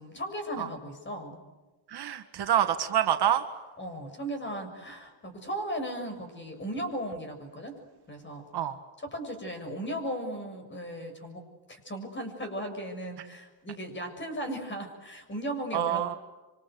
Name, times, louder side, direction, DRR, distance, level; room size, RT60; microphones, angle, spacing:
voice 1, 0.0-1.4 3.8-7.8 8.1-8.4 9.0-11.4 11.7-16.2, right 1 dB, 25° left, 6 dB, 6.8 m, -36 dB
voice 2, 1.9-3.4 8.5-8.8 15.7-16.2, right 10 dB, 55° right, 7 dB, 1.9 m, -26 dB
27.0 x 25.5 x 8.1 m, 1.2 s
cardioid pair, 130°, 48 cm